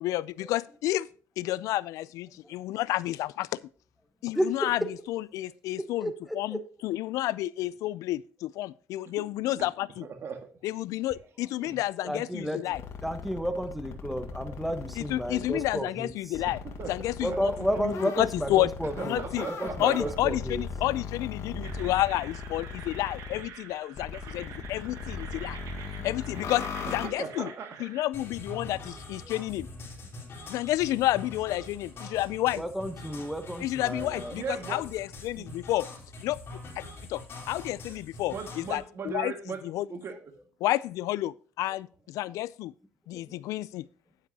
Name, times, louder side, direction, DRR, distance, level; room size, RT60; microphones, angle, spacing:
voice 1, 0.0-1.1 1.4-3.6 4.2-4.8 5.1-10.1 10.6-12.8 15.0-16.6 16.9-17.5 17.8-18.7 19.0-19.5 19.8-25.6 26.0-27.5 27.8-29.7 30.5-32.6 33.6-35.9 36.2-36.4 36.8-36.9 37.1-37.2 37.5-39.3 39.6-39.9 40.6-42.7 43.1-43.8, left 15 dB, 85° left, 0.3 m, -30 dB
voice 2, 4.3-4.7 6.0-6.6 12.0-12.7 13.0-16.4 17.2-20.6 24.6-24.7 26.0-26.1 29.2-29.3 32.5-34.4 42.3-42.4 43.1-43.4, equal, ahead, 1.1 m, -32 dB
voice 3, 10.0-10.5 11.6-11.8 16.4-17.0 19.0-20.2 20.8-20.9 27.0-27.8 34.3-34.9 35.3-35.5 38.3-39.6 39.9-40.3, right 5 dB, 50° right, 1.8 m, -38 dB
sound 1, 12.7-15.8 16.3-23.4 24.0-27.1, left 5 dB, 65° left, 1.7 m, -38 dB
sound 2, 21.6-28.0, right 7 dB, 75° right, 1.6 m, -47 dB
sound 3, 28.1-38.8, left 2 dB, 45° left, 4.3 m, -44 dB
10.0 x 9.6 x 2.8 m
cardioid pair, 110°, 6 cm